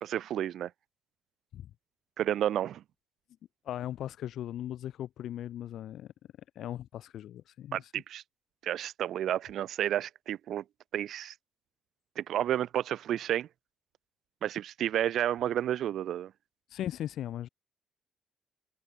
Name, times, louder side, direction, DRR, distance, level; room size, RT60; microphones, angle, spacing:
voice 1, 0.0-0.7 2.2-2.8 7.7-8.2 8.6-10.6 10.9-11.3 12.2-13.5 14.4-16.3, right 11 dB, 75° right, 0.9 m, -31 dB
voice 2, 3.6-6.1 6.5-7.9 16.7-17.5, left 11 dB, 75° left, 1.5 m, -38 dB
cardioid pair, 90°, 0 cm